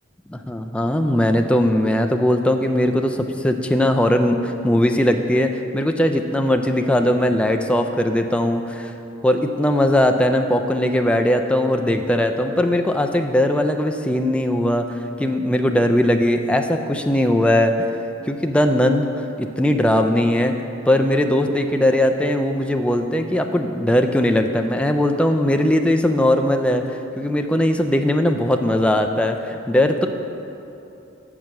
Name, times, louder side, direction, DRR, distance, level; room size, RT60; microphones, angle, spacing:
voice 1, 0.5-8.9 9.2-14.9 15.2-17.9 18.3-20.5 20.9-26.8 27.2-30.1, left 1 dB, 5° left, 4 dB, 0.3 m, -19 dB
6.9 x 6.0 x 6.4 m, 2.8 s
head